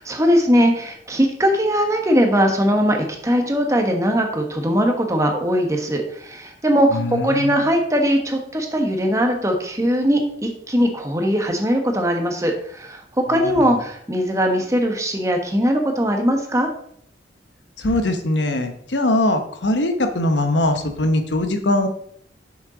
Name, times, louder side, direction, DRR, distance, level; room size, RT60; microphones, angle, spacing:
voice 1, 0.0-13.0 13.3-16.7, equal, 15° right, 3 dB, 1.1 m, -20 dB
voice 2, 6.9-7.6 13.3-13.8 17.8-21.9, left 1 dB, 75° left, 6 dB, 0.9 m, -21 dB
7.2 x 6.4 x 3.8 m, 0.65 s
head